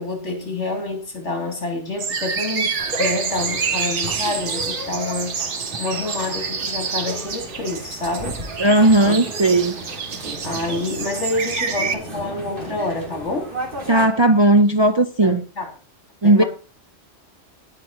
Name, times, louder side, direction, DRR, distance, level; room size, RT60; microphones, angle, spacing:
voice 1, 0.0-2.7 3.0-5.4 5.8-8.4 9.0-9.2 10.4-13.5 15.2-15.7 16.2-16.5, left 2 dB, 80° left, 3.7 m, -27 dB
sound 1, 2.0-11.9, right 5 dB, 80° right, 1.5 m, -28 dB
sound 2, 2.8-14.1, right 1 dB, 50° right, 3.0 m, -34 dB
voice 2, 8.6-9.7 13.9-15.4 16.2-16.4, right 1 dB, 30° right, 0.6 m, -15 dB
17.5 x 6.2 x 4.4 m
omnidirectional pair, 1.2 m